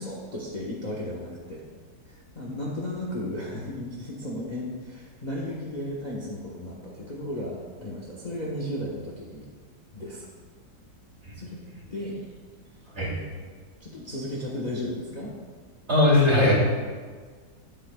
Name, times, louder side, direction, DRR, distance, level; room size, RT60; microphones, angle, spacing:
voice 1, 0.0-1.6 2.1-9.5 9.9-10.3 11.3-11.6 11.9-12.2 13.0-13.3 13.8-15.3, left 1 dB, 30° left, -4 dB, 1.2 m, -34 dB
voice 2, 15.9-16.5, left 2 dB, 40° right, -5 dB, 3.0 m, -19 dB
13.0 x 9.3 x 2.3 m, 1.6 s
omnidirectional pair, 1.9 m